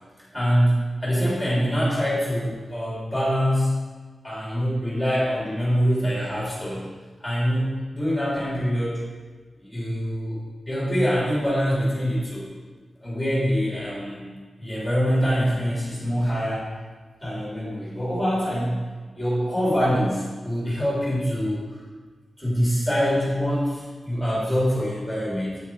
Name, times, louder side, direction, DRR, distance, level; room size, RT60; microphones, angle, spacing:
voice 1, 0.3-3.8 4.2-6.8 7.2-9.1 9.6-10.4 10.6-12.5 13.0-14.3 14.6-16.7 17.2-18.8 19.1-21.6 22.4-25.6, equal, 5° right, -7 dB, 3.4 m, -24 dB
8.9 x 8.1 x 4.8 m, 1.4 s
wide cardioid pair, 180°, 0 cm